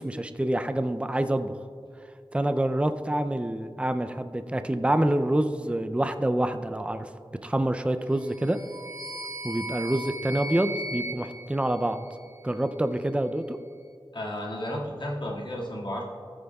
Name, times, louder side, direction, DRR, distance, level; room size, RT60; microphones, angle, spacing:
voice 1, 0.0-1.6 2.3-7.1 7.4-8.6 9.4-12.0 12.4-13.6, right 1 dB, 15° right, 9 dB, 0.5 m, -27 dB
sound 1, 8.2-12.5, right 1 dB, 40° right, 0.9 m, -37 dB
voice 2, 14.1-16.0, left 1 dB, 60° left, -4 dB, 2.1 m, -33 dB
16.5 x 8.8 x 2.4 m, 2.4 s
wide cardioid pair, 40°, 9 cm